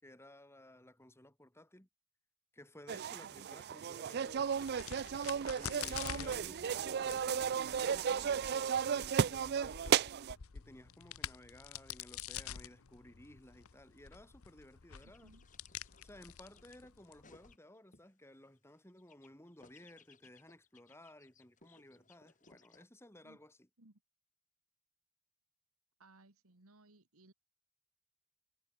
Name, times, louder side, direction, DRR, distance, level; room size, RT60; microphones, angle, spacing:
voice 1, 0.0-1.9 2.5-4.8 5.5-9.9 10.5-15.3 16.0-23.7, left 1 dB, 10° left, 3.5 m, -57 dB
sound 1, 2.9-10.3, right 7 dB, 50° right, 0.4 m, -34 dB
Crack, 4.3-17.5, left 9 dB, 80° left, 0.9 m, -48 dB
sound 2, 15.0-18.1 18.4-22.8, left 4 dB, 35° left, 4.0 m, -65 dB
voice 2, 15.0-15.5 23.2-23.4 23.8-24.0 26.0-27.3, right 2 dB, 90° right, 2.3 m, -63 dB
head